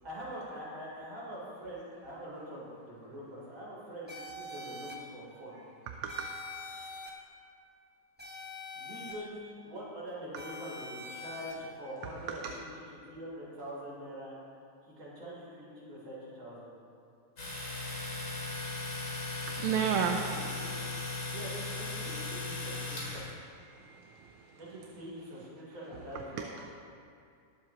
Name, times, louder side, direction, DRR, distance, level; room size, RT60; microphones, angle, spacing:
voice 1, 0.0-5.6 8.7-12.5 13.1-14.3 14.9-16.7 20.0-20.7 21.3-23.2 24.6-26.5, equal, 75° right, -6 dB, 4.0 m, -44 dB
sound 1, 4.1-4.9 6.1-7.1 8.2-9.1 10.3-11.5, left 2 dB, 10° right, 0.5 m, -44 dB
Domestic sounds home sounds, 17.4-23.3, left 3 dB, 40° left, 2.6 m, -37 dB
voice 2, 19.5-20.2 20.7-20.8 23.7-24.6 26.4-26.7, right 8 dB, 90° right, 3 dB, 1.5 m, -33 dB
20.5 x 7.5 x 2.9 m, 2.5 s
omnidirectional pair, 2.2 m